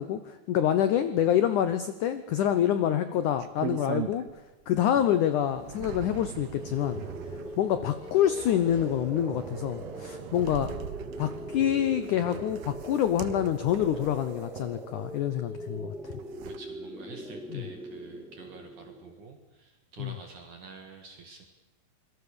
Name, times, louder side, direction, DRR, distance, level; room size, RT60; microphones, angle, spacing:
voice 1, 0.0-4.3 4.7-7.0 7.6-10.7 11.2-16.2 17.5-17.6 20.0-20.1, left 10 dB, 80° left, 11 dB, 1.8 m, -27 dB
sound 1, 3.4-4.5 5.0-15.2 15.9-16.6, right 10 dB, 70° right, 2.6 m, -41 dB
Sliding door, 5.0-10.1, left 3 dB, 65° left, 5.6 m, -52 dB
sound 2, 6.6-19.4, right 1 dB, ahead, 0.7 m, -42 dB
voice 2, 16.4-21.5, right 4 dB, 55° right, 4 dB, 3.0 m, -48 dB
27.5 x 21.5 x 6.9 m, 1.1 s
omnidirectional pair, 4.9 m